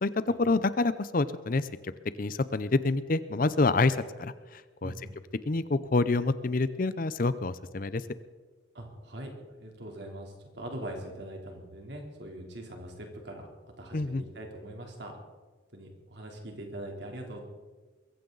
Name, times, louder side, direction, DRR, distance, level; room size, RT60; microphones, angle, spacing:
voice 1, 0.0-1.9 2.2-4.9 5.5-8.0 13.9-14.2, left 3 dB, 45° left, 14 dB, 0.6 m, -27 dB
voice 2, 4.8-5.2 8.7-13.5 13.8-15.1 15.7-17.4, right 1 dB, 60° right, 1 dB, 3.3 m, -42 dB
22.5 x 15.0 x 4.0 m, 1.3 s
head